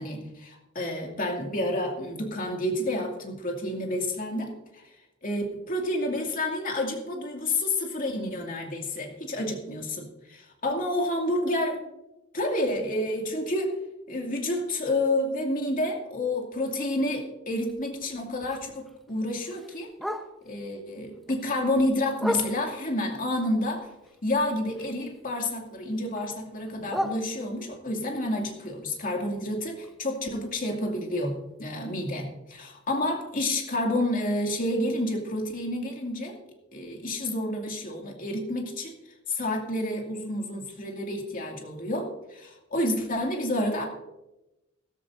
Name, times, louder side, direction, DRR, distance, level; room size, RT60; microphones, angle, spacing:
voice 1, 0.0-4.9 5.2-11.8 12.3-13.7 14.1-19.9 20.5-23.9 24.2-36.4 36.7-38.9 39.3-43.8, left 1 dB, 40° left, 1 dB, 2.4 m, -29 dB
Bark, 17.5-20.7 21.1-23.0 23.4-25.3 25.5-27.8 28.3-32.2 32.5-32.6 32.9-33.3 33.8-33.9 34.2-34.3 34.8-34.9, equal, ahead, 0.9 m, -38 dB
15.5 x 14.0 x 2.7 m, 0.96 s
head